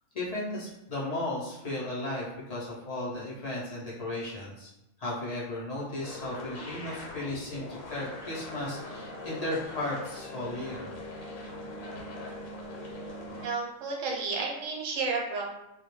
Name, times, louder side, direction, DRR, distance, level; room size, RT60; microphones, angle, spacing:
voice 1, 0.1-4.7 5.0-10.9, left 1 dB, 50° left, -6 dB, 0.4 m, -35 dB
sound 1, 6.0-13.5, left 2 dB, 80° left, 1.0 m, -41 dB
voice 2, 13.4-15.4, right 4 dB, 75° right, -1 dB, 0.9 m, -31 dB
2.2 x 2.1 x 3.0 m, 0.88 s
omnidirectional pair, 1.4 m